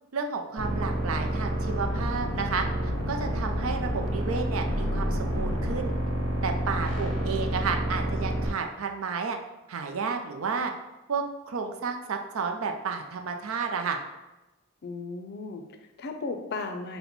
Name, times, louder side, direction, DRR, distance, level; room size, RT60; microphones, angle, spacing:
voice 1, 0.1-2.7 3.1-5.9 6.4-9.4 9.7-10.7 11.1-14.0, right 5 dB, 90° right, 4 dB, 0.5 m, -31 dB
sound 1, 0.6-8.5, equal, 75° right, 1.3 m, -29 dB
voice 2, 14.8-17.0, left 3 dB, 50° left, 6 dB, 0.4 m, -36 dB
4.0 x 2.1 x 4.3 m, 1.0 s
head